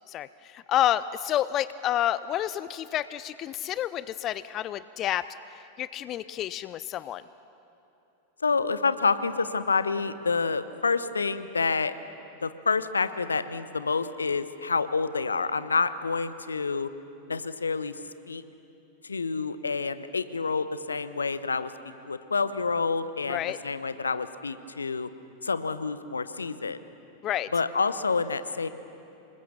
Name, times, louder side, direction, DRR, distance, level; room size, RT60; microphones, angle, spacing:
voice 1, 0.1-5.3 5.8-7.2 23.3-23.6 27.2-27.5, left 12 dB, 35° left, 16 dB, 0.4 m, -29 dB
voice 2, 8.4-11.9 12.4-16.9 17.3-17.9 18.3-18.4 19.0-25.1 25.4-26.8 27.5-28.7, left 4 dB, 75° left, 13 dB, 0.9 m, -28 dB
26.5 x 21.0 x 7.0 m, 2.8 s
figure-of-eight pair, 90°, 0 cm